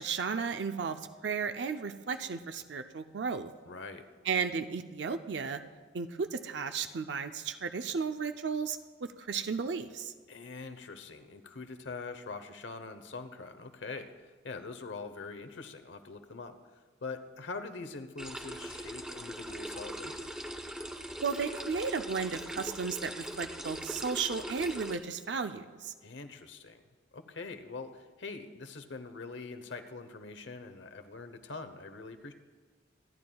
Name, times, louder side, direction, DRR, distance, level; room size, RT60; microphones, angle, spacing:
voice 1, 0.0-3.5 4.2-5.6 5.9-10.1 21.2-25.9, right 5 dB, 70° right, 8 dB, 0.5 m, -34 dB
voice 2, 3.7-4.0 10.3-20.3 26.0-26.8 27.1-32.3, left 4 dB, 75° left, 9 dB, 0.9 m, -43 dB
sound 1, 18.2-25.0, right 1 dB, 5° right, 0.7 m, -41 dB
26.0 x 10.5 x 2.3 m, 1.5 s
head